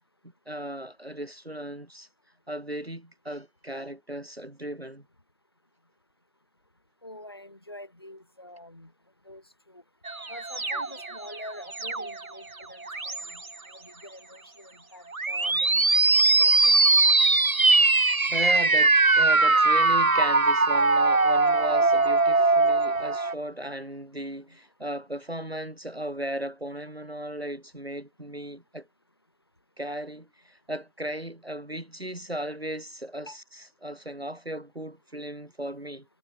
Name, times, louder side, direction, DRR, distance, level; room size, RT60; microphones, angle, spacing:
voice 1, 0.5-2.1 2.5-5.0 18.3-28.9 29.8-36.1, right 1 dB, 45° right, 2.6 m, -36 dB
voice 2, 7.0-8.9 9.2-9.4 9.7-9.8 10.3-13.4 13.7-16.1 16.4-17.0 33.3-33.4, left 1 dB, 15° left, 4.9 m, -46 dB
sound 1, 10.1-12.3 12.8-13.4 15.1-23.3, right 3 dB, 70° right, 1.2 m, -21 dB
figure-of-eight pair, 175°, 43 cm